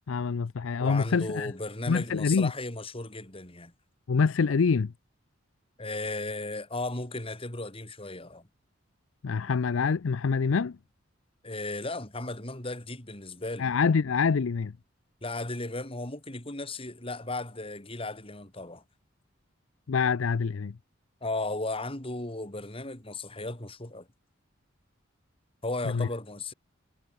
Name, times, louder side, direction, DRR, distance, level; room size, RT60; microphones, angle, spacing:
voice 1, 0.1-1.5 1.9-2.5 4.1-4.9 9.2-10.8 13.6-14.7 19.9-20.8 25.8-26.1, left 5 dB, 80° left, 0.5 m, -26 dB
voice 2, 0.8-3.7 5.8-8.5 11.4-13.7 15.2-18.8 21.2-24.1 25.6-26.5, left 2 dB, 30° left, 3.7 m, -35 dB
head